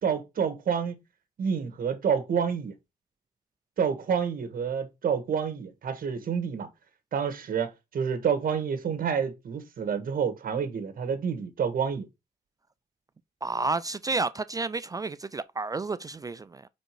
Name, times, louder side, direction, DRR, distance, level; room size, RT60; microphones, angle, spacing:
voice 1, 0.0-0.9 1.4-2.7 3.8-6.7 7.1-12.1, right 7 dB, 70° right, 1.6 m, -28 dB
voice 2, 13.4-16.7, right 3 dB, 25° right, 0.3 m, -31 dB
5.2 x 5.0 x 4.7 m
wide cardioid pair, 135°, 15 cm